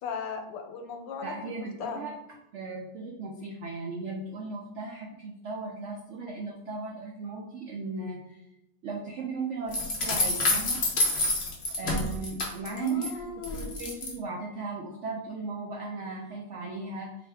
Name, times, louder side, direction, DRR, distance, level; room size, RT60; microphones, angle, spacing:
voice 1, 0.0-2.0 12.8-13.8, left 5 dB, 85° left, 5 dB, 1.2 m, -37 dB
voice 2, 1.2-2.1 2.5-8.4 8.8-10.8 11.8-13.3 13.5-17.1, right 4 dB, 80° right, 0 dB, 0.6 m, -36 dB
sound 1, 9.7-13.1 13.4-14.1, left 2 dB, 55° left, 0.7 m, -28 dB
4.1 x 2.6 x 3.3 m, 0.84 s
omnidirectional pair, 1.8 m